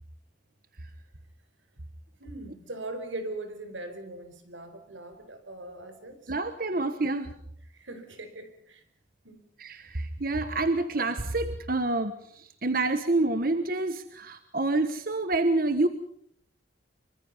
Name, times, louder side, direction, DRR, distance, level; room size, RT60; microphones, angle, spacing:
voice 1, 2.2-6.3 7.7-8.8 9.2-9.4, right 2 dB, 85° right, 9 dB, 4.5 m, -40 dB
voice 2, 6.3-7.3 9.6-15.9, right 2 dB, 50° right, 10 dB, 1.3 m, -28 dB
25.5 x 24.5 x 5.5 m, 0.66 s
head